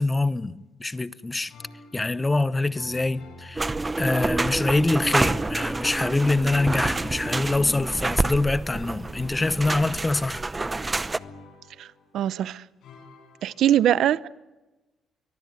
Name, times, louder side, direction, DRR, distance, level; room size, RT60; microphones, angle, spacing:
voice 1, 0.0-1.5 1.9-10.4, left 2 dB, 20° left, 1.0 m, -25 dB
sound 1, 1.5-2.4 2.7-4.4 5.1-6.1 6.5-8.4 9.1-12.4 12.8-13.7, left 3 dB, 75° left, 6.4 m, -49 dB
sound 2, 3.6-11.2, right 3 dB, 20° right, 0.7 m, -28 dB
voice 2, 12.1-12.6 13.4-14.3, right 11 dB, 75° right, 0.7 m, -22 dB
24.0 x 18.5 x 9.5 m
cardioid pair, 90°, 0 cm